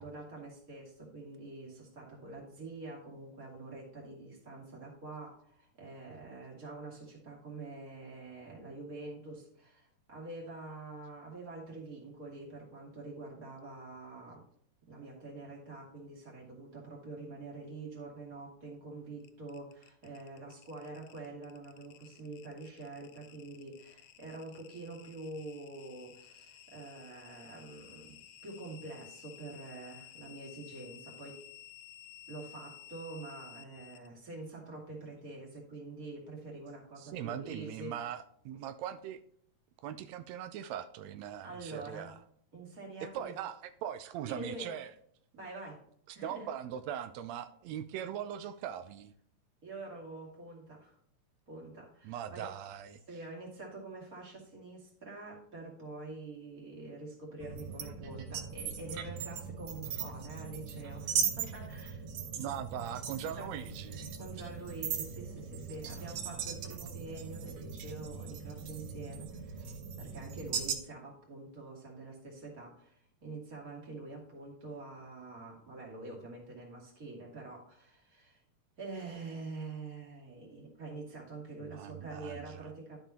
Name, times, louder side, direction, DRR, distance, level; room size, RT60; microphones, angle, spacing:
voice 1, 0.0-14.4 14.9-31.4 32.3-37.9 41.4-42.1 42.5-43.3 44.2-44.7 45.3-45.8 46.1-46.5 49.6-51.0 51.5-52.5 53.1-62.1 63.3-63.6 64.2-69.6 70.0-78.4 78.8-83.0, right 2 dB, 30° right, -2 dB, 2.7 m, -46 dB
sound 1, 19.2-34.1, left 11 dB, 80° left, 1.5 m, -54 dB
voice 2, 37.0-39.2 39.8-42.2 43.0-44.9 46.1-49.1 52.0-53.0 62.4-64.1 81.6-82.7, right 10 dB, 90° right, 10 dB, 1.5 m, -40 dB
sound 2, 57.4-70.8, right 7 dB, 70° right, 2.0 m, -39 dB
12.5 x 5.4 x 2.9 m, 0.65 s
omnidirectional pair, 3.7 m